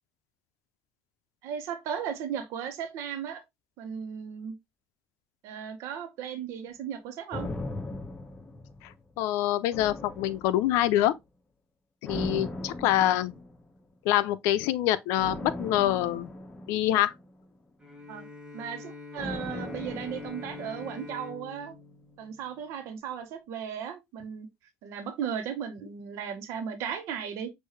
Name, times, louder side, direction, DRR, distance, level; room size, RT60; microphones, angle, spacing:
voice 1, 1.4-3.4 3.8-4.5 5.4-7.5 12.3-12.4 18.1-18.3 18.5-21.7 22.2-24.5 24.8-27.5, right 8 dB, 80° right, 1.1 m, -36 dB
sound 1, 7.3-9.2 9.7-11.0 12.1-13.8 15.2-17.6 19.2-21.3 21.6-21.7, left 1 dB, 25° left, 1.1 m, -38 dB
voice 2, 9.2-11.1 12.0-13.3 14.0-16.3 16.7-17.1, left 13 dB, 90° left, 0.5 m, -25 dB
Bowed string instrument, 17.8-23.0, left 3 dB, 10° right, 2.1 m, -45 dB
6.5 x 2.6 x 3.1 m
cardioid pair, 105°, 5 cm